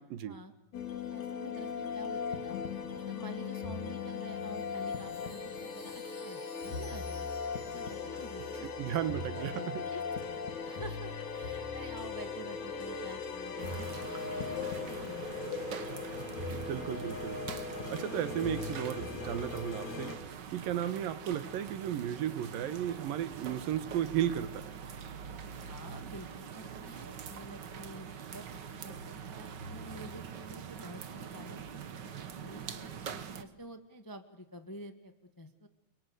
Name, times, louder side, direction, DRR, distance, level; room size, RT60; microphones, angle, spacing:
voice 1, 0.2-0.5 1.1-2.5 2.9-7.3 7.7-8.7 9.1-10.0 10.3-15.6 15.9-16.1 25.6-28.5 28.8-32.9 33.3-35.7, right 1 dB, 20° left, 8 dB, 0.5 m, -49 dB
sound 1, 0.7-20.2, left 5 dB, 60° left, 3.3 m, -38 dB
Chime, 4.3-9.9, left 2 dB, 40° left, 6.0 m, -57 dB
voice 2, 8.6-9.5 16.5-17.4 17.9-20.1 20.5-24.7, right 10 dB, 80° right, 13 dB, 3.1 m, -34 dB
sound 2, 13.6-33.4, right 7 dB, 55° right, 1.2 m, -44 dB
30.0 x 23.5 x 8.1 m, 0.95 s
omnidirectional pair, 3.9 m